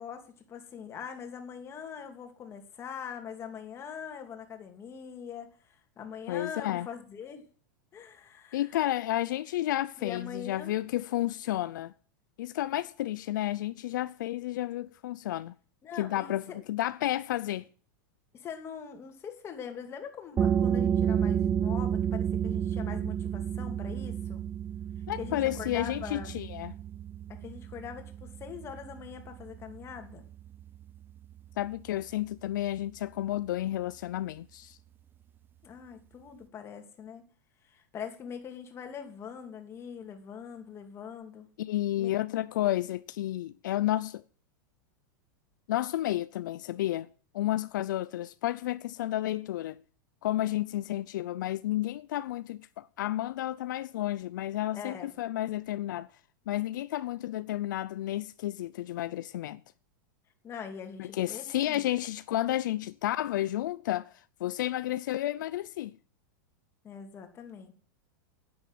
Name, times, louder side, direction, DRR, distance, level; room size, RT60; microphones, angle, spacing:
voice 1, 0.0-7.4 7.9-8.7 10.0-10.8 15.8-16.6 18.3-24.4 25.2-26.4 27.3-30.2 35.6-37.2 37.6-41.5 42.0-42.1 42.6-42.7 54.7-55.1 60.4-61.8 66.8-67.8, left 7 dB, 25° left, 2.7 m, -42 dB
voice 2, 6.3-6.9 8.5-11.9 12.4-15.5 16.0-17.7 25.1-26.7 31.6-34.8 41.6-44.2 45.7-47.1 47.3-49.8 50.2-56.1 56.5-59.6 61.0-65.9, left 14 dB, 75° left, 0.6 m, -31 dB
sound 1, 20.4-31.7, right 9 dB, 20° right, 0.5 m, -31 dB
10.0 x 8.7 x 9.1 m
supercardioid pair, 140°, 10 cm